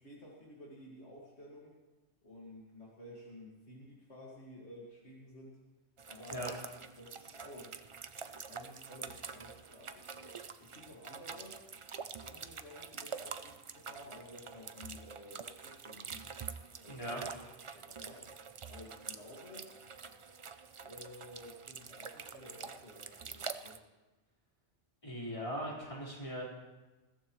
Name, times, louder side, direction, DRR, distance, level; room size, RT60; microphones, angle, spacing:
voice 1, 0.0-1.7 2.2-5.6 6.1-6.5 7.0-7.8 8.5-11.6 12.2-16.3 16.8-17.4 17.7-18.2 18.7-19.7 20.6-23.8, left 1 dB, 65° left, -4 dB, 2.3 m, -53 dB
sound 1, 6.0-23.8, right 5 dB, 45° right, 0.4 m, -46 dB
voice 2, 16.9-17.2 25.0-26.4, equal, 25° left, -5 dB, 4.5 m, -39 dB
21.0 x 15.0 x 3.1 m, 1.2 s
omnidirectional pair, 1.2 m